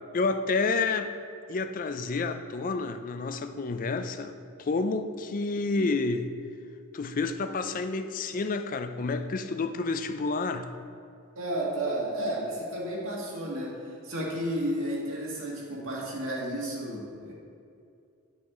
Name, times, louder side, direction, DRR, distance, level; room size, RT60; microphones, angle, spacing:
voice 1, 0.1-1.1 1.5-6.3 6.9-10.7, left 3 dB, 40° left, 8 dB, 0.4 m, -29 dB
voice 2, 11.4-17.3, right 1 dB, 60° right, -4 dB, 1.9 m, -32 dB
10.5 x 6.2 x 3.7 m, 2.4 s
head